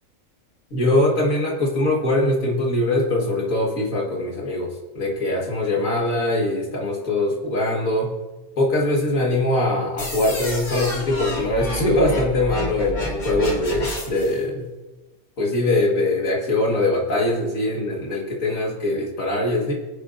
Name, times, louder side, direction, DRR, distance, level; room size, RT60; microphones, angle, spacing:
voice 1, 0.7-8.1 8.6-14.7 15.4-19.7, left 1 dB, 65° left, -2 dB, 2.1 m, -22 dB
sound 1, 10.0-14.4, left 1 dB, 90° left, 3.2 m, -30 dB
23.0 x 9.8 x 2.6 m, 1.1 s
omnidirectional pair, 1.5 m